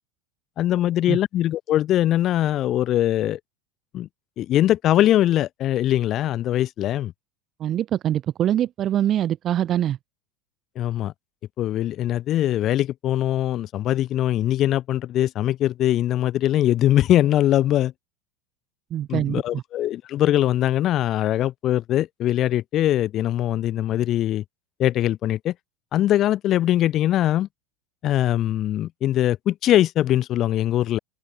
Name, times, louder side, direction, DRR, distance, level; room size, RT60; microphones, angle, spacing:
voice 1, 0.6-3.4 3.9-4.1 4.4-7.1 10.8-11.1 11.6-17.9 19.1-24.4 24.8-25.5 25.9-27.5 28.0-31.0, left 13 dB, 40° left, 3.8 m, -22 dB
voice 2, 7.6-10.0 18.9-19.6, right 11 dB, 35° right, 1.0 m, -24 dB
open air
supercardioid pair, 125°, 0 cm